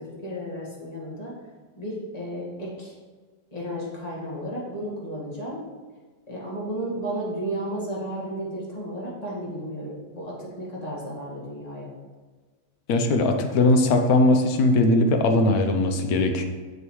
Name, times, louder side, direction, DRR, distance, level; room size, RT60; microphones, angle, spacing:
voice 1, 0.0-1.3 1.8-2.9 3.5-5.6 6.3-11.9, right 1 dB, 25° left, -5 dB, 1.7 m, -33 dB
voice 2, 12.9-16.5, left 2 dB, 65° left, 5 dB, 1.2 m, -20 dB
6.9 x 6.8 x 3.1 m, 1.4 s
omnidirectional pair, 1.8 m